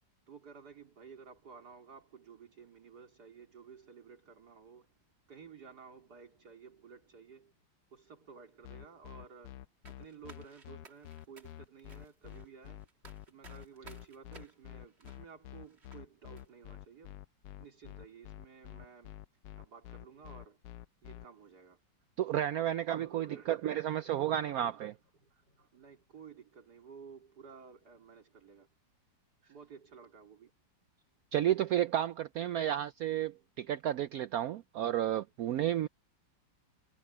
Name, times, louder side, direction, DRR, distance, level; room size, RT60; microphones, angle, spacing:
voice 1, 0.3-4.9 5.3-7.5 7.9-12.9 13.3-17.2 17.6-19.1 19.6-20.6 21.0-21.8 22.5-24.8 25.2-28.7 29.5-30.5, right 6 dB, 55° right, 3.7 m, -54 dB
sound 1, 8.6-21.2, left 13 dB, 70° left, 1.0 m, -48 dB
sound 2, 9.8-16.0 16.3-16.5, right 4 dB, 35° right, 2.0 m, -59 dB
voice 2, 22.2-24.9 31.3-35.9, right 11 dB, 80° right, 0.8 m, -32 dB
omnidirectional pair, 2.1 m